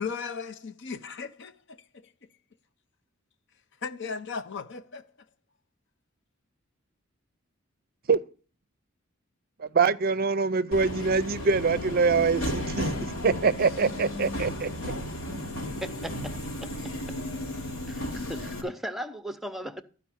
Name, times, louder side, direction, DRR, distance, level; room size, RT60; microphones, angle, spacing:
voice 1, 0.0-1.8 3.8-5.1, left 5 dB, 60° left, 0.7 m, -36 dB
voice 2, 9.6-14.7, right 4 dB, 45° right, 0.5 m, -24 dB
Subway metro underground, 10.7-18.6, left 1 dB, 85° left, 2.8 m, -34 dB
voice 3, 15.8-16.8 17.1-17.2 17.9-19.8, equal, ahead, 0.7 m, -37 dB
13.0 x 5.1 x 7.2 m
head